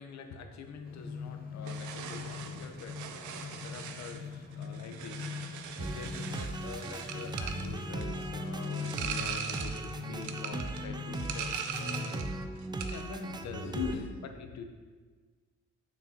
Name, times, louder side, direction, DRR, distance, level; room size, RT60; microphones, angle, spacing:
voice 1, 0.0-12.3 12.8-14.6, left 5 dB, 65° left, 6 dB, 0.8 m, -44 dB
sound 1, 0.8-12.5, left 5 dB, 30° left, 0.7 m, -42 dB
sound 2, 1.6-12.4 12.6-13.1, right 7 dB, 75° right, 0.6 m, -41 dB
sound 3, 5.8-13.9, right 3 dB, 15° right, 0.3 m, -39 dB
7.0 x 6.0 x 2.8 m, 1.5 s
cardioid pair, 90°, 30 cm